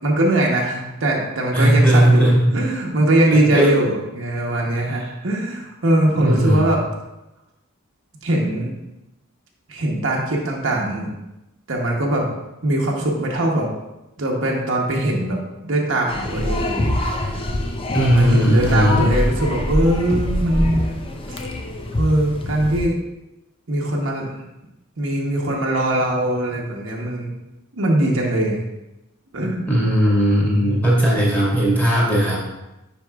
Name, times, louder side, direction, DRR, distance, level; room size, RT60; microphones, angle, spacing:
voice 1, 0.0-6.8 8.2-8.7 9.7-11.1 11.7-12.3 12.6-13.7 14.2-17.3 18.0-20.9 21.3-21.4 22.0-23.0 23.7-24.4 25.0-27.3 27.7-28.6 29.3-29.7 30.6-31.0, right 1 dB, 65° right, -1 dB, 1.0 m, -21 dB
voice 2, 1.5-2.6 3.5-3.7 6.1-6.6 17.9-19.1 29.7-32.4, equal, 5° left, -6 dB, 1.8 m, -17 dB
sound 1, 16.1-22.9, left 1 dB, 25° left, 0.5 m, -24 dB
10.0 x 4.6 x 2.4 m, 0.97 s
head